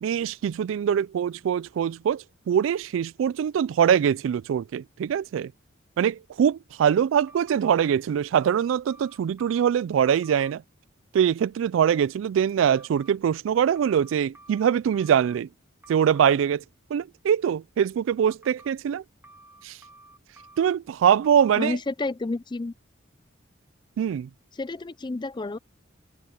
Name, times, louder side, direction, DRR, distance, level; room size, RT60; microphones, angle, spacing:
voice 1, 0.0-5.5 6.0-10.6 11.1-15.5 15.9-16.6 16.9-19.0 19.6-19.8 20.6-21.8 24.0-24.3, right 8 dB, 85° right, 0.3 m, -23 dB
sound 1, 7.3-7.8 8.4-9.7 10.1-10.5 12.6-13.1 13.7-15.4 15.8-16.3 18.3-18.7 19.2-20.8 21.2-21.7, right 2 dB, 10° right, 1.4 m, -51 dB
voice 2, 21.6-22.7 24.6-25.6, left 2 dB, 25° left, 0.5 m, -30 dB
head